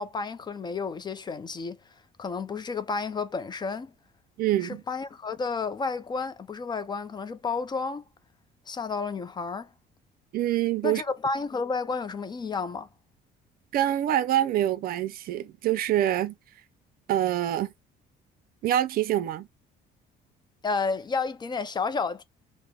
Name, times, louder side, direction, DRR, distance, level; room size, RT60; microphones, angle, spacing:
voice 1, 0.0-1.8 2.2-3.9 4.6-8.0 8.7-9.7 10.8-12.9 20.6-22.2, left 4 dB, 25° left, 0.4 m, -31 dB
voice 2, 4.4-4.8 10.3-11.0 13.7-16.4 17.1-17.7 18.6-19.5, right 12 dB, 60° right, 0.4 m, -25 dB
3.5 x 2.0 x 2.3 m
cardioid pair, 110°, 17 cm